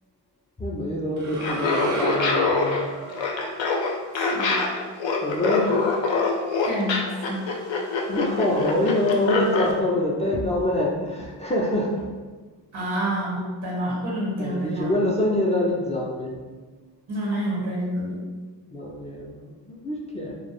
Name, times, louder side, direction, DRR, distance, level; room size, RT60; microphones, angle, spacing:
voice 1, 0.6-2.8 5.2-5.8 8.1-12.1 14.4-16.4 18.7-19.4 19.7-20.3, left 1 dB, 15° left, -4 dB, 0.3 m, -25 dB
sound 1, 1.2-5.4, right 2 dB, 45° right, 0.5 m, -34 dB
Laughter, 1.4-9.7, left 4 dB, 80° left, 0.5 m, -24 dB
voice 2, 4.1-4.6 6.6-7.5 12.7-14.9 17.1-18.2, right 1 dB, 70° right, -6 dB, 0.9 m, -28 dB
2.2 x 2.1 x 2.9 m, 1.3 s
cardioid pair, 65°, 44 cm